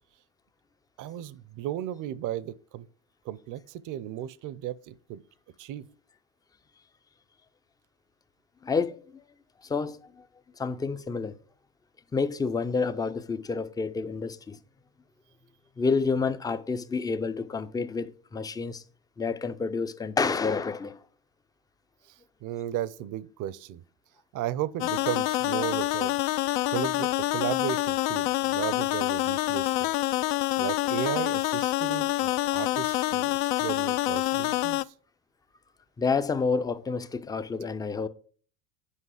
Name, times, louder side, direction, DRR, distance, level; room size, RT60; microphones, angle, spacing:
voice 1, 1.0-2.9 3.2-5.2 5.6-5.8 22.4-23.8 24.3-26.1 26.7-29.9 30.3-34.9, right 12 dB, 45° right, 0.6 m, -35 dB
voice 2, 8.6-9.2 9.6-10.3 10.6-11.3 12.1-14.6 15.8-18.8 19.2-21.0 36.0-38.1, left 4 dB, 10° left, 0.4 m, -29 dB
sound 1, 24.8-34.8, left 18 dB, 75° left, 0.5 m, -27 dB
8.4 x 5.3 x 4.9 m
supercardioid pair, 105°, 45 cm